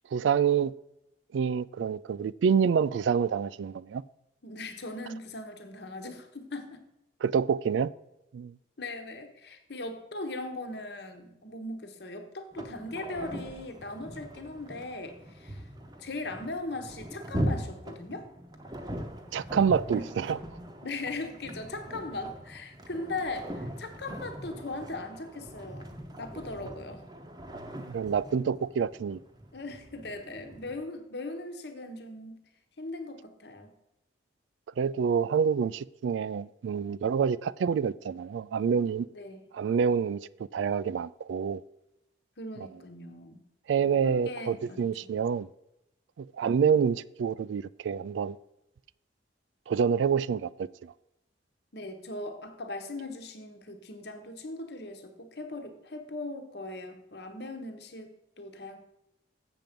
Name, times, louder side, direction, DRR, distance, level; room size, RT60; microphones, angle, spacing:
voice 1, 0.1-0.7 1.3-4.0 7.2-7.9 8.3-8.5 19.3-20.4 27.9-29.2 34.8-39.1 39.5-40.2 40.5-41.6 43.7-45.5 46.2-48.4 49.7-50.9, right 7 dB, 80° right, 0.3 m, -27 dB
voice 2, 4.4-6.8 8.8-15.7 16.0-18.3 19.9-20.1 20.8-25.9 26.2-27.0 29.5-32.4 32.8-33.7 39.1-39.4 42.4-43.5 43.8-44.9 51.7-58.8, left 2 dB, 60° left, 1.1 m, -39 dB
sound 1, 12.5-30.8, equal, 20° right, 0.8 m, -40 dB
7.6 x 7.1 x 5.1 m
head